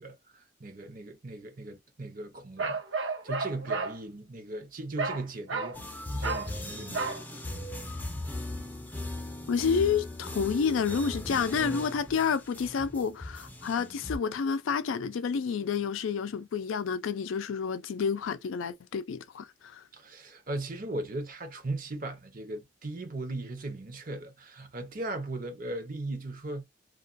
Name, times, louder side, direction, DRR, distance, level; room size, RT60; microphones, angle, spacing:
voice 1, 0.0-7.0 19.9-26.6, right 2 dB, 45° right, 0.7 m, -38 dB
Bark, 2.6-4.0 5.0-5.2 5.5-5.8 6.2-6.5 6.9-7.2, right 4 dB, 70° right, 0.9 m, -32 dB
sound 1, 5.7-14.2, left 1 dB, 10° left, 0.5 m, -38 dB
voice 2, 9.5-19.8, left 6 dB, 80° left, 0.4 m, -29 dB
2.3 x 2.2 x 2.5 m
head